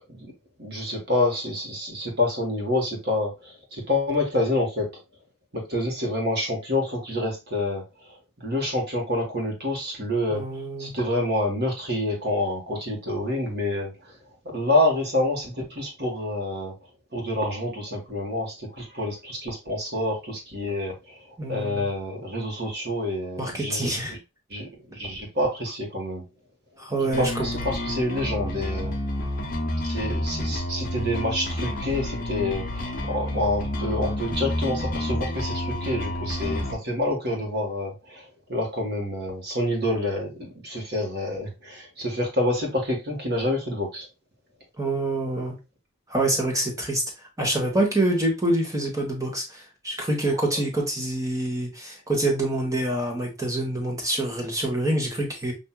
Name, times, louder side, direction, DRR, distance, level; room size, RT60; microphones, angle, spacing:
voice 1, 0.6-4.9 5.5-14.0 14.4-16.7 17.1-24.2 24.5-26.2 27.2-28.9 29.8-38.2 38.5-44.1, left 1 dB, 50° right, 1.3 m, -27 dB
voice 2, 10.3-10.9 21.4-21.9 23.4-24.1 26.8-27.5 44.8-45.6 46.1-47.0 47.4-55.5, right 1 dB, 15° right, 1.1 m, -26 dB
sound 1, 27.1-36.7, left 1 dB, 40° left, 0.9 m, -29 dB
5.8 x 2.6 x 2.2 m
head